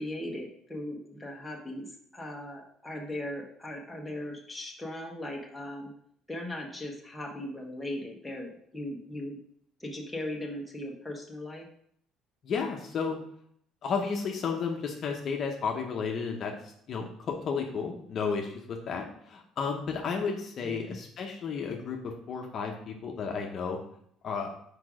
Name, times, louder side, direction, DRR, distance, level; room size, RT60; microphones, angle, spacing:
voice 1, 0.0-1.9 2.1-5.9 6.3-9.4 9.8-11.7 20.6-21.0, left 1 dB, 5° left, -1 dB, 1.2 m, -38 dB
voice 2, 12.4-13.2 13.8-23.8 24.2-24.5, left 5 dB, 45° left, 1 dB, 0.8 m, -33 dB
4.9 x 4.5 x 4.9 m, 0.68 s
cardioid pair, 120°, 0 cm